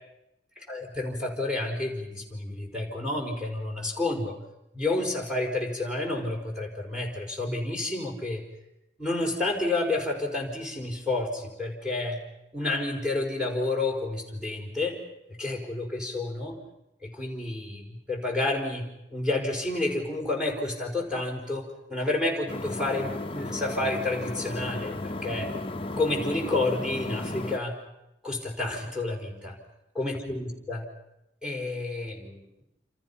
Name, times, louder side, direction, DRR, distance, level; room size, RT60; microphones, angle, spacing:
voice 1, 0.7-4.4 4.7-8.4 9.0-12.2 12.5-15.0 15.4-16.6 17.0-18.9 19.1-24.9 25.2-25.5 26.0-27.8 28.2-29.6 29.9-30.8 31.4-32.4, left 2 dB, 5° right, 0 dB, 5.0 m, -30 dB
sound 1, 22.5-27.6, left 2 dB, 30° left, 0.9 m, -35 dB
28.5 x 28.0 x 5.7 m, 0.87 s
head